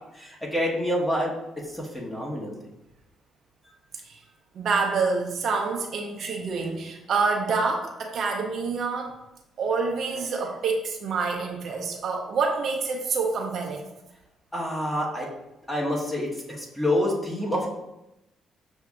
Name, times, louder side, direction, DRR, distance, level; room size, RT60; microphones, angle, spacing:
voice 1, 0.1-2.5 14.5-15.3 15.7-17.7, left 1 dB, 10° left, -3 dB, 1.2 m, -27 dB
voice 2, 4.5-9.1 9.6-13.9, right 4 dB, 65° right, 2 dB, 0.6 m, -27 dB
6.7 x 2.7 x 2.4 m, 0.91 s
cardioid pair, 90°, 0 cm